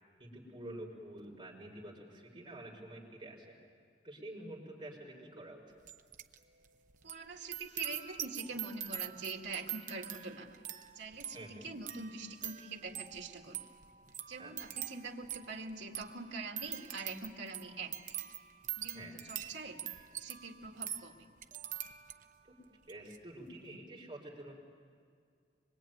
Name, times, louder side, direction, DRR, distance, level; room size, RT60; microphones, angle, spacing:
voice 1, 0.2-3.6 4.0-5.6 11.3-11.7 14.4-14.7 18.9-19.2 22.5-24.5, right 1 dB, 25° right, -2 dB, 4.9 m, -48 dB
sound 1, 5.9-6.4 6.6-22.4 22.8-23.2, right 10 dB, 45° right, 0.8 m, -44 dB
voice 2, 7.0-10.6 11.0-13.6 14.3-18.2 18.8-19.8 20.2-21.3, right 3 dB, 85° right, 2 dB, 2.0 m, -44 dB
25.5 x 22.0 x 9.3 m, 2.2 s
head